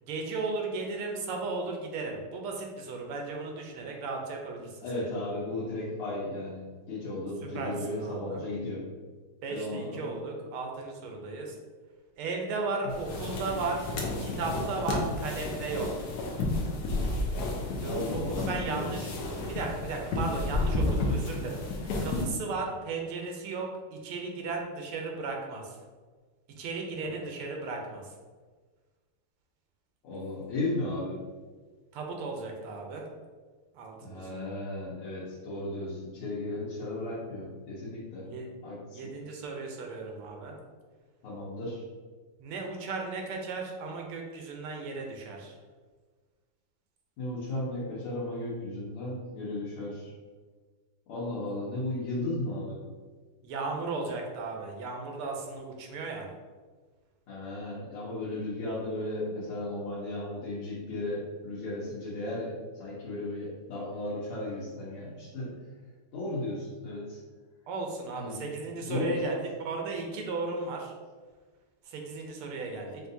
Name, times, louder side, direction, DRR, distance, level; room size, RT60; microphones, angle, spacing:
voice 1, 0.0-4.7 7.5-8.4 9.4-11.6 12.2-15.9 17.8-19.1 19.5-21.6 22.0-25.6 26.6-28.0 31.9-33.0 33.7-34.5 38.3-38.5 38.9-40.6 42.4-45.5 53.4-56.3 67.7-70.9 71.9-73.0, right 3 dB, 80° right, 1 dB, 1.6 m, -35 dB
voice 2, 4.8-8.8 9.5-10.1 12.8-12.9 17.8-18.9 27.0-27.1 30.0-31.2 34.0-38.3 38.6-39.1 41.2-41.8 47.2-50.1 51.1-52.8 57.3-65.5 66.1-67.2 68.1-68.4 68.8-69.2, left 2 dB, 85° left, -10 dB, 1.9 m, -35 dB
sound 1, 12.9-22.3, left 2 dB, 65° left, 1.0 m, -32 dB
5.7 x 2.5 x 2.7 m, 1.4 s
omnidirectional pair, 2.4 m